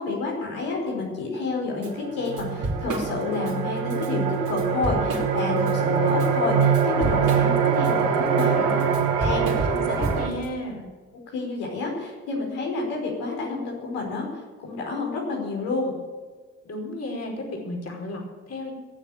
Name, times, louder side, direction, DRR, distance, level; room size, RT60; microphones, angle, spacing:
voice 1, 0.0-8.6 9.2-10.0 11.3-14.3 14.6-15.9, left 3 dB, 75° left, -2 dB, 4.9 m, -29 dB
sound 1, 1.3-1.4 1.8-10.3, right 6 dB, 85° right, 2.0 m, -24 dB
Drum kit / Drum, 1.8-1.9 2.2-3.5 3.9-4.1 4.5-5.7 6.1-10.5, right 2 dB, 50° right, 5.0 m, -30 dB
voice 2, 8.3-8.8 9.7-10.8 16.6-18.7, left 1 dB, 40° left, 0 dB, 4.7 m, -33 dB
18.5 x 7.4 x 9.0 m, 1.4 s
hypercardioid pair, 55°, 38 cm